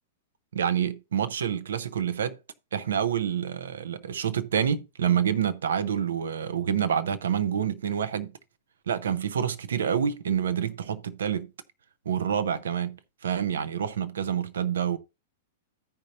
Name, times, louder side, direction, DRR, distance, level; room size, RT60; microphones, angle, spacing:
voice 1, 0.5-2.4 2.7-8.3 8.9-11.5 12.1-15.0, right 8 dB, 70° right, 0.8 m, -27 dB
15.0 x 5.3 x 2.7 m
figure-of-eight pair, 100°, 0 cm